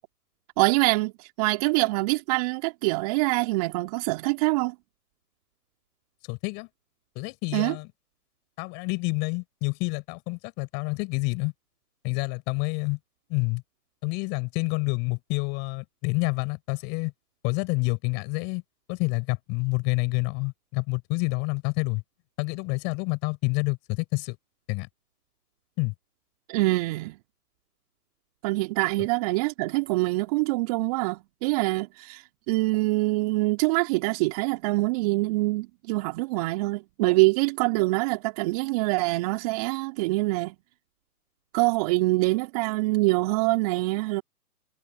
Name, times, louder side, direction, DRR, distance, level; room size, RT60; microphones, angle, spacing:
voice 1, 0.6-4.7 7.5-7.7 26.5-27.2 28.4-40.5 41.5-44.2, right 23 dB, 25° right, 3.0 m, -25 dB
voice 2, 6.3-6.7 7.1-7.9 8.6-11.5 12.0-13.0 13.3-13.6 14.0-17.1 17.4-18.6 18.9-22.0 22.4-24.4 24.7-24.9 25.8-25.9, left 30 dB, 20° left, 8.0 m, -28 dB
figure-of-eight pair, 145°, 46 cm